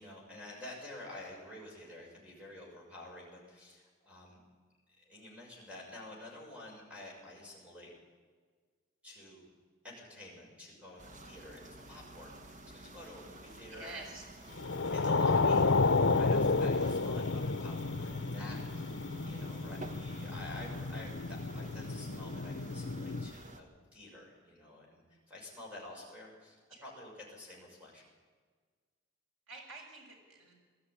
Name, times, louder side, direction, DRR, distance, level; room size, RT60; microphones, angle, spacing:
voice 1, 0.0-4.4 4.9-7.9 9.0-9.4 9.8-14.2 14.5-15.7 15.9-28.1, left 1 dB, 5° right, -3 dB, 6.6 m, -49 dB
sound 1, 11.0-23.6, right 2 dB, 40° right, 1.6 m, -51 dB
voice 2, 13.7-14.2 17.1-17.2 26.7-26.8 29.5-30.5, right 3 dB, 90° right, 1 dB, 6.6 m, -48 dB
sound 2, 14.6-23.3, left 3 dB, 70° left, 0.8 m, -31 dB
20.5 x 13.0 x 10.0 m, 1.5 s
head